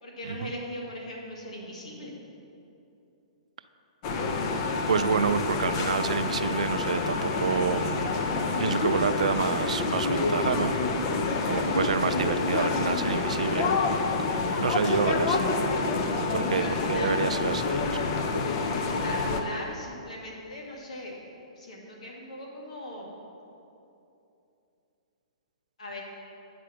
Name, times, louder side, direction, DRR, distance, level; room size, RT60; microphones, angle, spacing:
voice 1, 0.0-2.1 16.5-17.2 18.5-21.3 21.6-23.1 25.8-26.0, left 1 dB, 85° left, -2 dB, 2.1 m, -39 dB
sound 1, 4.0-19.4, left 3 dB, 40° left, 0.7 m, -27 dB
voice 2, 4.9-8.1 8.6-10.7 11.5-13.8 14.6-15.5 16.2-18.0, right 6 dB, 85° right, 11 dB, 0.4 m, -28 dB
9.4 x 5.1 x 5.8 m, 2.8 s
hypercardioid pair, 140°, 4 cm